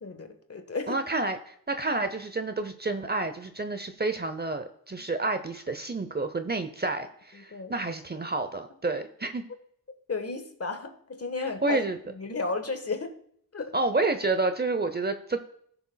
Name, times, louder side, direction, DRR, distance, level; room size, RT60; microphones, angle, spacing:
voice 1, 0.0-1.0 7.3-7.7 10.1-11.8 12.1-13.1 13.5-13.7, left 4 dB, 40° left, 1.4 m, -33 dB
voice 2, 0.9-9.4 11.6-12.0 13.7-15.4, right 3 dB, 25° right, 0.7 m, -29 dB
17.0 x 6.9 x 2.3 m
cardioid pair, 70°, 38 cm